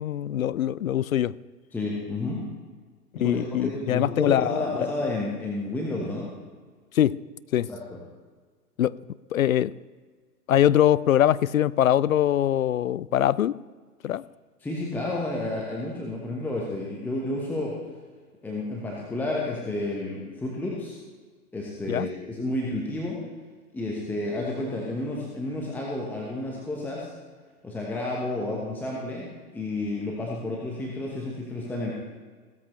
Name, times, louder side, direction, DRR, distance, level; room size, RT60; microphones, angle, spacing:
voice 1, 0.0-1.4 3.2-4.9 6.9-7.2 7.5-7.7 8.8-9.0 9.3-9.7 10.5-13.6 14.0-14.2 21.9-22.1, left 11 dB, 65° left, 0.5 m, -23 dB
voice 2, 1.7-2.4 3.2-6.3 7.7-8.0 14.6-17.7 18.4-21.0 21.5-23.2 23.7-27.1 27.6-31.9, left 2 dB, 5° left, 1.1 m, -31 dB
16.0 x 13.0 x 3.2 m
figure-of-eight pair, 120°, 47 cm